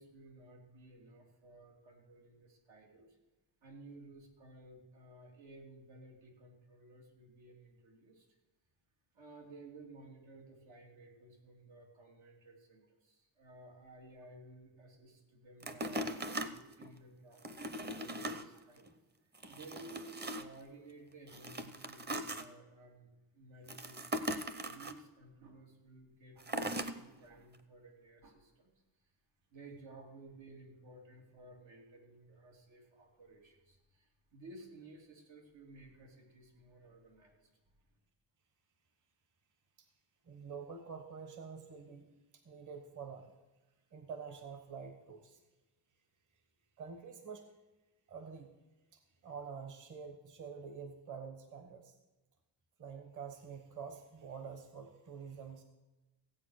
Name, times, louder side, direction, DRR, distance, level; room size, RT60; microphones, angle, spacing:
voice 1, 0.0-3.2 3.6-8.3 9.1-16.0 16.3-18.9 19.4-28.7 29.5-37.8, right 2 dB, 90° right, 1 dB, 3.2 m, -56 dB
sound 1, 15.6-16.9 17.4-18.5 18.9-19.0 19.3-20.6 21.3-22.4 23.7-24.9 26.4-27.0 27.5-27.6, right 1 dB, 25° right, 0.7 m, -39 dB
voice 2, 40.3-42.1 42.4-43.3 43.9-45.4 46.8-47.4 48.1-48.5 49.2-52.0 52.8-55.6, right 6 dB, 40° right, 6 dB, 1.2 m, -47 dB
16.0 x 8.3 x 6.5 m, 1.1 s
wide cardioid pair, 165°, 44 cm